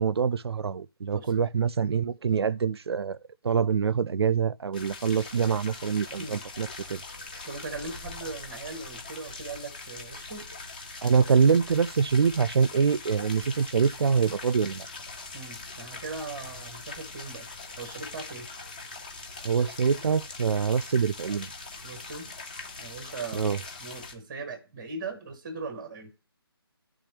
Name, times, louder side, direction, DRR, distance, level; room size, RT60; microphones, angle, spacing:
voice 1, 0.0-3.2 3.4-7.0 11.0-14.9 19.4-21.5 23.3-23.6, right 6 dB, 90° right, 0.4 m, -25 dB
sound 1, 4.7-24.1, left 3 dB, 20° left, 0.7 m, -42 dB
voice 2, 7.4-10.5 15.3-17.5 17.8-18.5 21.8-22.3 22.8-26.1, right 3 dB, 15° right, 0.8 m, -39 dB
10.0 x 3.5 x 3.4 m
hypercardioid pair, 175°, 13 cm